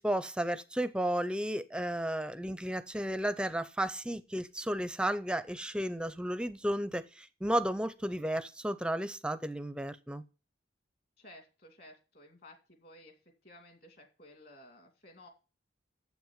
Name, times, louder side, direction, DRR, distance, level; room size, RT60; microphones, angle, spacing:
voice 1, 0.0-10.2, right 1 dB, 5° right, 0.5 m, -33 dB
voice 2, 11.2-13.1 13.4-15.3, left 1 dB, 50° left, 2.5 m, -55 dB
7.7 x 5.9 x 7.3 m
head